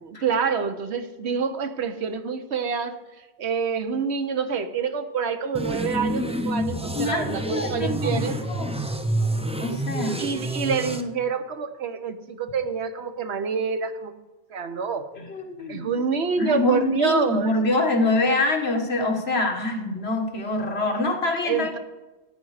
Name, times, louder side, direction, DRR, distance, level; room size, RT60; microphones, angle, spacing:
voice 1, 0.0-3.0 3.4-8.4 10.2-14.1 14.5-15.1 15.7-17.5 21.4-21.8, right 6 dB, 75° right, 9 dB, 1.1 m, -27 dB
sound 1, 5.5-11.0, right 1 dB, 10° right, 0.5 m, -28 dB
voice 2, 6.9-8.2 8.5-8.7 9.6-10.2 15.2-15.9 16.4-21.8, left 2 dB, 65° left, 2 dB, 1.8 m, -25 dB
13.5 x 9.1 x 4.9 m, 1.1 s
omnidirectional pair, 1.1 m